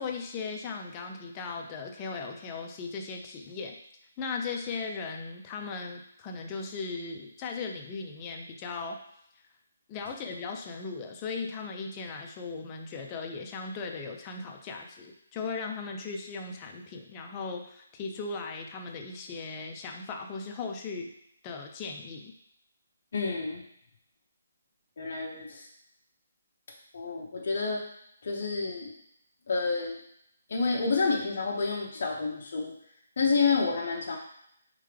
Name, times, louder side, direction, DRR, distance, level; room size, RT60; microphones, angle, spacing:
voice 1, 0.0-3.8 4.2-9.0 9.9-21.1 21.4-22.3, left 4 dB, 15° left, 2 dB, 0.4 m, -37 dB
voice 2, 23.1-23.6 25.0-25.7 26.9-27.8 28.2-28.9 29.5-30.0 30.5-32.7 33.2-34.2, left 4 dB, 45° left, -2 dB, 0.7 m, -29 dB
4.2 x 3.6 x 3.3 m, 0.73 s
hypercardioid pair, 175°, 0 cm